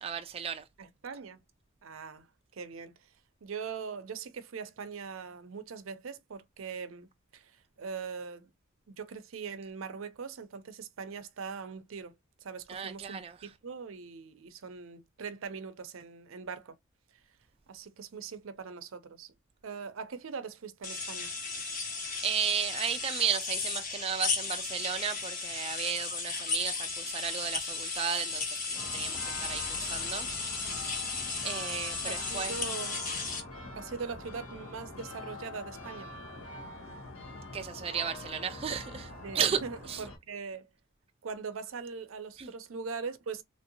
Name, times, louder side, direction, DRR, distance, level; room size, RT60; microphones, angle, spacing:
voice 1, 0.0-0.6 12.7-13.3 21.8-22.0 22.2-30.3 30.6-30.7 31.0-32.6 37.5-39.6 39.9-40.0 42.4-42.5, right 7 dB, 30° right, 0.3 m, -34 dB
voice 2, 0.8-1.4 1.8-2.3 2.5-2.9 3.4-7.1 7.3-8.5 8.9-12.1 12.4-16.7 17.7-19.3 19.6-21.3 32.0-33.0 33.8-36.1 39.2-40.7 41.2-43.4, right 5 dB, 80° right, 0.5 m, -41 dB
sound 1, 20.8-33.4, left 4 dB, 40° left, 1.2 m, -35 dB
sound 2, 28.8-40.2, left 2 dB, 85° left, 1.3 m, -44 dB
3.1 x 2.7 x 2.7 m
head